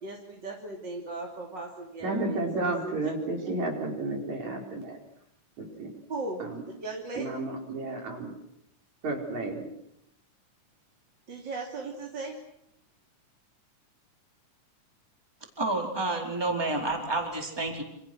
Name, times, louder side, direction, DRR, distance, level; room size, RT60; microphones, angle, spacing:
voice 1, 0.0-3.0 6.1-6.4 6.8-7.2 11.3-12.4, right 3 dB, 35° right, 0 dB, 3.3 m, -37 dB
voice 2, 2.0-5.0 5.6-5.9 6.4-6.6 7.2-8.3 9.0-9.7, right 2 dB, 55° right, 1 dB, 6.2 m, -32 dB
voice 3, 15.6-17.8, right 2 dB, 5° right, 1 dB, 4.3 m, -29 dB
28.5 x 27.5 x 6.4 m, 0.77 s
omnidirectional pair, 3.9 m